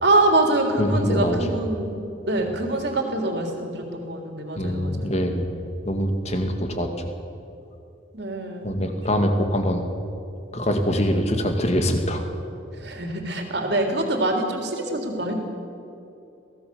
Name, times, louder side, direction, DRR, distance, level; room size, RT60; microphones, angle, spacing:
voice 1, 0.0-1.9 2.3-5.2 6.3-6.6 8.1-9.2 12.7-15.3, right 2 dB, 60° right, 3 dB, 3.5 m, -25 dB
voice 2, 0.8-1.4 4.6-5.5 5.9-7.1 8.6-9.8 10.5-12.2, equal, 35° left, 5 dB, 2.3 m, -23 dB
23.5 x 17.5 x 7.0 m, 2.8 s
head